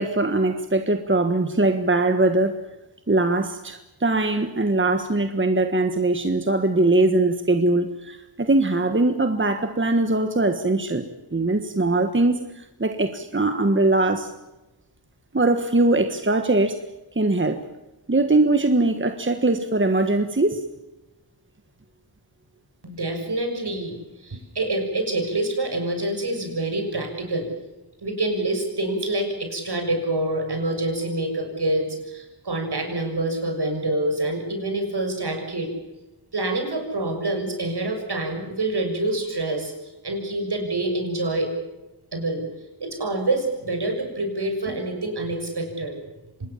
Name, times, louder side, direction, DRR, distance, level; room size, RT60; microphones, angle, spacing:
voice 1, 0.0-2.5 3.1-14.3 15.3-16.8 17.1-17.6 18.1-20.6, right 2 dB, 25° right, 8 dB, 1.5 m, -21 dB
voice 2, 22.8-27.5 28.0-35.7 36.3-39.7 40.0-41.5 42.1-42.4 42.8-46.0, right 2 dB, 60° right, 4 dB, 6.6 m, -26 dB
26.0 x 20.0 x 7.2 m, 1.0 s
wide cardioid pair, 80°, 44 cm